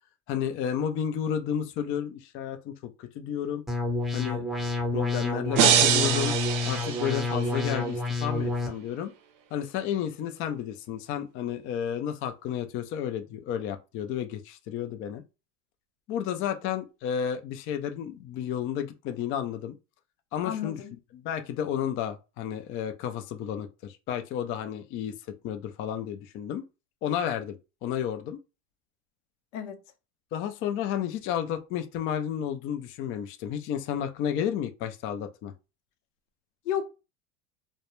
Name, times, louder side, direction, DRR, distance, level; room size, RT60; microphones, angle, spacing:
voice 1, 0.3-3.6 4.1-4.4 4.9-6.3 6.6-9.1 9.5-15.2 16.1-19.8 20.3-20.8 21.1-25.2 25.4-26.6 27.0-27.6 27.8-28.4 30.3-35.5, left 9 dB, 35° left, 0.4 m, -32 dB
sound 1, 3.7-8.7, left 3 dB, ahead, 0.7 m, -29 dB
sound 2, 5.6-7.7, right 9 dB, 55° right, 0.5 m, -24 dB
voice 2, 20.4-20.9 29.5-29.8 36.6-36.9, left 9 dB, 80° left, 0.7 m, -32 dB
2.2 x 2.1 x 2.9 m
supercardioid pair, 105°, 37 cm